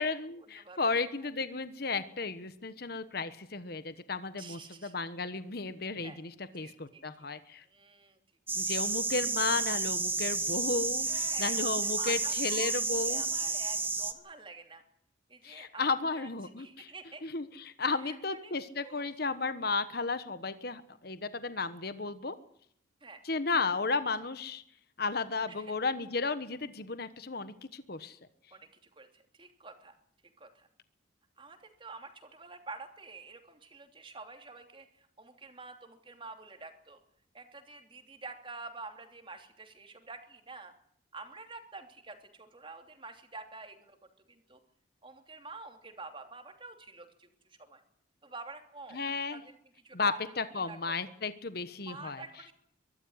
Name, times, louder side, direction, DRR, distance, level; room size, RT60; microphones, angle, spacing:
voice 1, 0.0-7.6 8.6-11.1 11.4-13.2 15.4-16.9 17.2-22.3 23.2-24.6 25.0-28.2 48.9-49.4 49.9-52.2, left 4 dB, 55° left, 12 dB, 1.2 m, -34 dB
voice 2, 0.5-1.3 4.4-4.9 6.0-6.2 6.6-7.0 7.7-8.2 11.0-14.8 15.3-16.3 16.6-17.2 18.0-18.5 18.8-19.1 23.0-23.2 25.5-25.7 28.5-30.0 30.4-30.7 31.4-37.0 37.3-40.7 41.1-44.0 44.3-44.6 45.0-47.8 48.2-49.0 49.3-49.5 49.8-50.9 51.8-52.5, right 3 dB, 25° right, 5 dB, 3.0 m, -48 dB
sound 1, 8.5-14.1, right 3 dB, 10° right, 1.5 m, -31 dB
23.5 x 12.5 x 9.8 m, 0.67 s
head